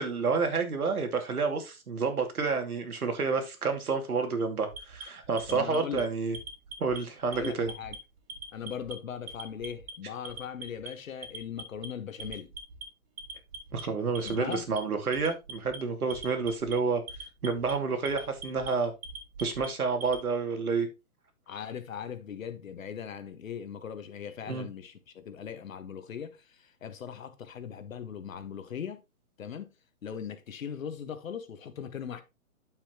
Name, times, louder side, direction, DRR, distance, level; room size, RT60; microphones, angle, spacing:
voice 1, 0.0-6.4 6.8-7.7 13.7-17.0 17.4-18.9 19.4-20.9 24.5-24.7, right 4 dB, 85° right, 2.6 m, -29 dB
Alarm, 4.7-6.0 6.3-7.0 7.3-8.0 8.3-8.9 9.3-9.9 10.2-10.9 11.2-11.9 12.2-12.8 13.2-13.8 14.1-14.8 15.1-15.8 16.1-16.7 17.1-17.7 18.0-18.7 19.0-20.2, right 4 dB, 45° right, 2.5 m, -42 dB
voice 2, 5.5-6.0 7.3-8.0 8.5-12.5 14.2-14.6 21.5-29.0 29.4-29.7 30.0-32.2, left 8 dB, 65° left, 1.6 m, -39 dB
9.0 x 7.2 x 3.0 m
hypercardioid pair, 145°, 43 cm